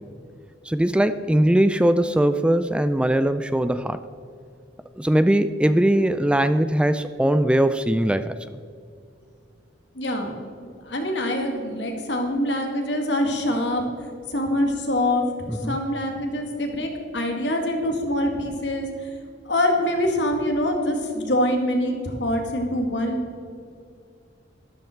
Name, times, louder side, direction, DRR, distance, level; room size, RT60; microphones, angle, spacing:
voice 1, 0.7-4.0 5.0-8.3 15.5-15.8, right 1 dB, 5° right, 12 dB, 0.3 m, -20 dB
voice 2, 10.0-13.8 14.3-19.1 19.5-23.2, left 1 dB, 70° left, 3 dB, 2.1 m, -25 dB
12.5 x 12.5 x 4.5 m, 2.3 s
head